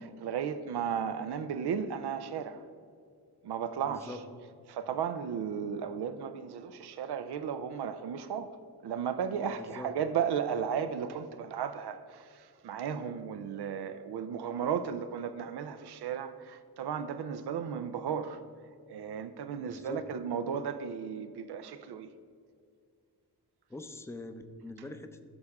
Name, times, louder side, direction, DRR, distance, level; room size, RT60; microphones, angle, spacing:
voice 1, 0.0-2.6 3.4-4.2 4.7-8.5 8.8-18.4 18.9-22.1, right 7 dB, 80° right, 11 dB, 0.6 m, -35 dB
voice 2, 3.9-4.2 9.4-9.9 19.7-20.0 23.7-25.3, left 2 dB, 5° left, 7 dB, 0.6 m, -43 dB
14.5 x 6.5 x 3.6 m, 2.3 s
wide cardioid pair, 95°, 39 cm